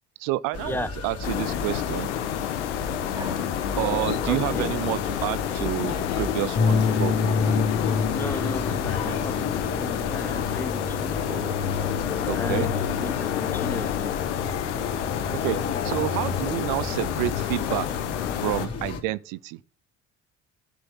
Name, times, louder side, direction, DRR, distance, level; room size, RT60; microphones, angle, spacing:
voice 1, 0.2-2.1 3.8-7.6 12.3-12.7 15.4-17.9 18.4-19.6, right 17 dB, 65° right, 0.6 m, -29 dB
sound 1, 0.5-19.0, left 4 dB, 40° left, 3.6 m, -30 dB
sound 2, 1.2-18.7, left 10 dB, 85° left, 1.3 m, -29 dB
sound 3, 3.1-5.6 6.8-7.5 7.8-8.3 11.2-11.9 15.4-16.2, right 1 dB, 10° right, 2.2 m, -41 dB
voice 2, 4.2-4.7 8.1-11.2 12.3-14.1, left 1 dB, 5° left, 0.7 m, -35 dB
11.0 x 7.6 x 5.8 m
hypercardioid pair, 65°, 35 cm